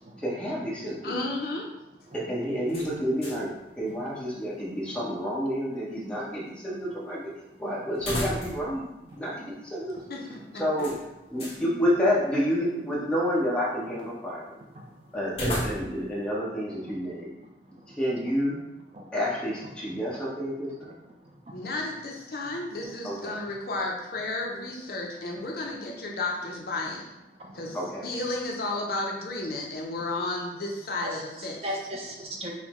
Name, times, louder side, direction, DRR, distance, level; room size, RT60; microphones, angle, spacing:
voice 1, 0.2-1.2 2.1-7.3 7.6-10.0 10.5-11.0 11.3-14.6 15.1-17.3 17.9-18.6 19.1-21.0 23.0-23.3 27.7-28.1, equal, 5° left, -6 dB, 0.8 m, -29 dB
voice 2, 1.0-1.7 10.1-10.2 10.5-10.6 21.5-27.1 27.5-27.8 28.0-31.6, left 2 dB, 55° left, -1 dB, 0.6 m, -32 dB
voice 3, 2.1-2.4 3.9-4.1 9.1-9.2 14.7-15.2 17.7-18.0 18.9-19.1 21.2-21.7 22.6-22.9 25.4-25.5 26.9-27.0 27.3-27.8 31.0-32.5, equal, 35° right, 0 dB, 0.5 m, -40 dB
sound 1, 2.7-3.6 3.9-4.0 7.9-8.8 9.1-9.2 10.8-11.6 15.3-16.1, equal, 35° left, 1.1 m, -33 dB
5.5 x 2.1 x 3.0 m, 0.96 s
head